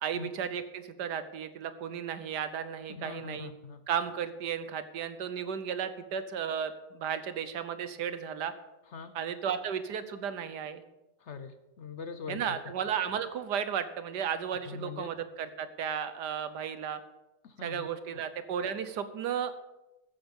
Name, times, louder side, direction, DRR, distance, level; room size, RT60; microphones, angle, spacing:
voice 1, 0.0-3.5 3.9-8.5 9.1-10.8 12.3-17.0 17.6-19.6, right 8 dB, 75° right, 11 dB, 1.4 m, -34 dB
voice 2, 2.9-3.8 8.9-9.1 11.2-12.6 14.7-15.1 17.4-17.9, left 6 dB, 55° left, 10 dB, 0.8 m, -42 dB
14.5 x 9.0 x 5.4 m, 0.99 s
omnidirectional pair, 1.9 m